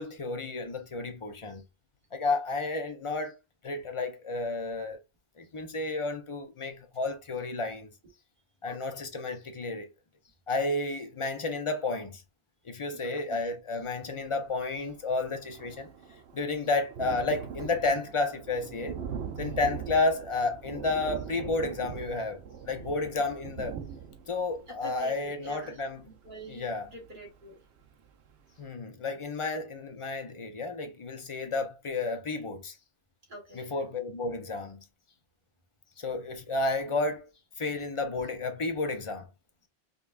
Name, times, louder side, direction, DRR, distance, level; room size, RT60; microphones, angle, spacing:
voice 1, 0.0-1.6 2.1-3.4 3.6-5.0 5.4-7.9 8.6-9.9 10.5-12.2 12.6-15.9 16.3-19.0 19.4-22.4 22.6-23.8 24.3-26.0 26.5-26.9 28.6-32.7 33.5-34.8 36.0-37.3 37.6-39.3, left 3 dB, 40° left, 0.5 m, -31 dB
voice 2, 8.7-9.0 13.0-13.4 24.7-26.7 26.9-27.6 33.3-33.7, right 2 dB, 55° right, 1.7 m, -46 dB
Thunder, 14.5-14.6 14.8-27.4 27.9-28.0 28.3-28.4, right 7 dB, 90° right, 0.9 m, -41 dB
5.1 x 2.3 x 2.4 m
omnidirectional pair, 1.1 m